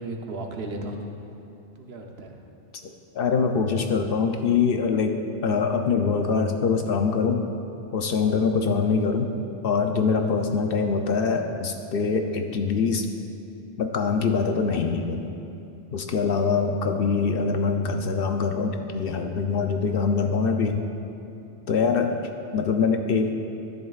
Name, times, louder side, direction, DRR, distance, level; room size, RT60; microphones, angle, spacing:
voice 1, 0.0-1.5 1.7-2.5, right 1 dB, 65° right, 2 dB, 1.0 m, -35 dB
voice 2, 2.8-7.4 7.9-9.3 9.6-13.1 13.8-15.3 15.9-20.8 21.7-23.3, left 5 dB, 60° left, 5 dB, 0.7 m, -24 dB
12.5 x 10.5 x 2.4 m, 2.8 s
omnidirectional pair, 1.2 m